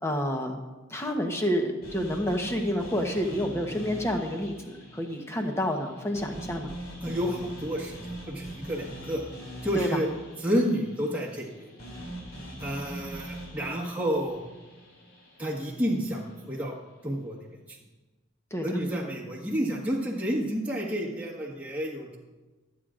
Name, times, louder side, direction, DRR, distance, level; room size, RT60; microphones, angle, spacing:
voice 1, 0.0-0.6 0.9-4.5 4.9-6.7 9.7-10.0 18.5-18.6, equal, 15° left, 3 dB, 1.0 m, -29 dB
sound 1, 1.8-16.0, right 1 dB, 90° left, 3.2 m, -42 dB
voice 2, 7.0-9.2 9.6-10.1 10.4-11.7 12.6-14.4 15.4-16.8 17.0-17.5 18.6-22.2, equal, 5° right, -5 dB, 1.5 m, -30 dB
24.0 x 8.7 x 2.5 m, 1.2 s
head